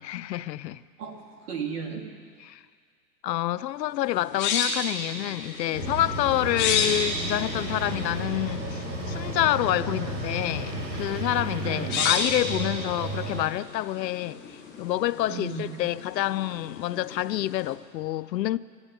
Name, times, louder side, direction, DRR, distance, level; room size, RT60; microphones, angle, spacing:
voice 1, 0.0-0.8 2.5-2.6 3.2-18.6, left 14 dB, 85° left, 0.6 m, -28 dB
voice 2, 1.0-2.1 9.8-10.0 11.6-12.1 15.3-15.8, right 5 dB, 65° right, 2.5 m, -35 dB
sound 1, 3.9-17.7, left 5 dB, 20° left, 2.0 m, -33 dB
sound 2, 5.7-13.4, right 2 dB, 90° right, 3.0 m, -33 dB
12.5 x 11.5 x 9.5 m
hypercardioid pair, 150°, 50 cm